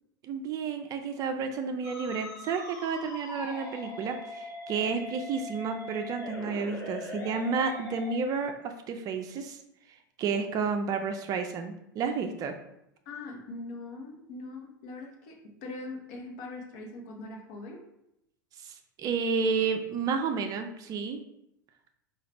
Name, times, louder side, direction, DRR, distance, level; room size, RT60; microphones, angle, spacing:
voice 1, 0.2-9.6 10.2-12.6 18.6-21.2, right 5 dB, 35° right, 6 dB, 0.4 m, -31 dB
Musical instrument, 1.8-8.2, left 1 dB, 30° left, 1.3 m, -41 dB
voice 2, 13.1-17.8, left 2 dB, 55° left, 3 dB, 0.9 m, -42 dB
4.7 x 2.3 x 3.3 m, 0.81 s
figure-of-eight pair, 85°, 11 cm